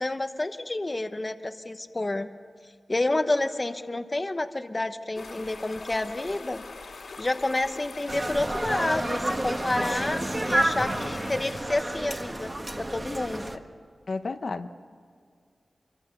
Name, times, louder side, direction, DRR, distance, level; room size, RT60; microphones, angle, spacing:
voice 1, 0.0-2.3 2.9-6.6 7.2-12.5 12.8-13.5, left 2 dB, 25° left, 8 dB, 1.0 m, -29 dB
sound 1, 5.1-11.6, left 3 dB, 75° left, 2.8 m, -43 dB
sound 2, 8.1-13.6, right 1 dB, 20° right, 1.4 m, -30 dB
voice 2, 14.1-14.7, left 3 dB, 55° left, 7 dB, 0.9 m, -31 dB
26.5 x 24.0 x 6.8 m, 2.1 s
wide cardioid pair, 130°, 0 cm